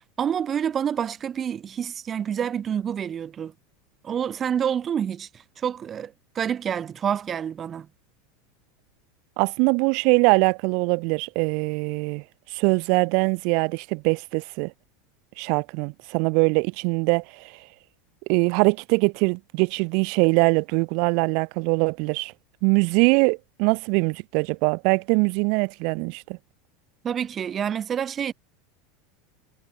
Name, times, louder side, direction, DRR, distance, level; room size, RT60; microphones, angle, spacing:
voice 1, 0.0-3.5 4.0-7.9 27.0-28.3, right 8 dB, 30° right, 4.8 m, -28 dB
voice 2, 9.4-12.2 12.5-14.7 15.4-17.4 18.3-22.3 22.6-26.4, right 36 dB, 60° right, 5.0 m, -22 dB
supercardioid pair, 115°, 0 cm